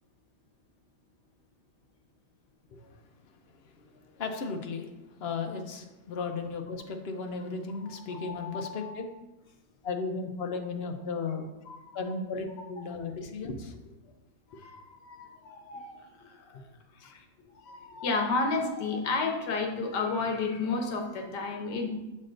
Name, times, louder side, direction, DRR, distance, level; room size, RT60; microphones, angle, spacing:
voice 1, 4.1-9.1 9.8-11.5 11.9-13.9 17.0-17.1, left 4 dB, 60° left, 5 dB, 0.7 m, -35 dB
voice 2, 7.9-8.5 11.7-12.0 14.5-16.6 17.0-17.2 17.6-21.9, left 3 dB, 85° left, 3 dB, 1.5 m, -32 dB
7.3 x 6.4 x 2.5 m, 1.0 s
omnidirectional pair, 1.8 m